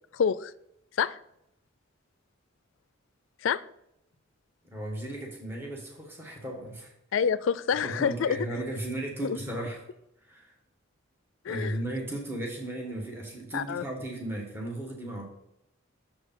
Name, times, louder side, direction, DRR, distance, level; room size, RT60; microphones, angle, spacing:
voice 1, 0.1-0.5 1.0-1.2 3.4-3.6 7.1-8.4 9.2-9.4 11.4-11.8 13.5-13.8, left 7 dB, 75° left, 0.4 m, -27 dB
voice 2, 4.6-6.9 7.8-9.8 10.2-10.5 11.5-15.2, right 1 dB, 10° right, 1.4 m, -35 dB
7.0 x 5.0 x 5.4 m
head